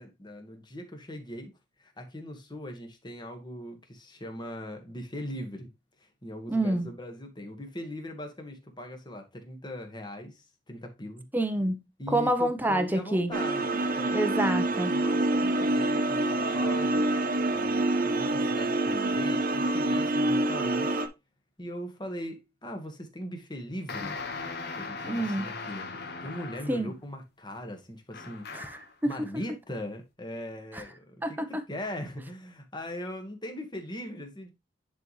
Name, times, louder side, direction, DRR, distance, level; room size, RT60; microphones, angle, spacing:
voice 1, 0.0-1.5 1.8-5.7 6.0-11.2 12.0-14.2 14.9-17.1 17.5-21.0 21.6-24.2 24.8-28.5 29.0-34.5, left 1 dB, 25° left, 1.6 m, -40 dB
voice 2, 6.5-6.9 11.3-11.8 12.1-13.3 14.1-14.9 25.0-25.5 26.7-26.9 28.5-29.1 30.7-30.8 31.2-31.5, right 1 dB, 10° right, 0.8 m, -27 dB
sound 1, 13.3-21.1, right 2 dB, 50° right, 1.1 m, -26 dB
sound 2, 23.9-26.9 28.1-28.9, left 4 dB, 60° left, 1.3 m, -38 dB
10.5 x 4.2 x 3.2 m
head